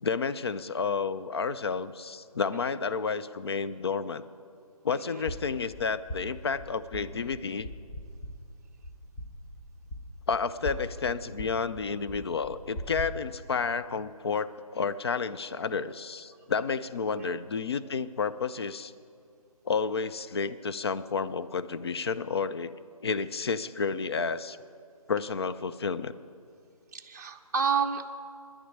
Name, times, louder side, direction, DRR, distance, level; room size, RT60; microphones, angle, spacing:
voice 1, 0.0-4.2 4.8-7.7 10.3-18.9 19.7-22.7 23.0-24.6 25.1-26.1, left 5 dB, 45° left, 12 dB, 0.5 m, -31 dB
sound 1, 5.2-13.1, equal, 10° left, 0.7 m, -41 dB
voice 2, 26.9-28.1, right 6 dB, 30° right, 1 dB, 0.8 m, -30 dB
10.0 x 10.0 x 9.2 m, 2.4 s
figure-of-eight pair, 160°, 19 cm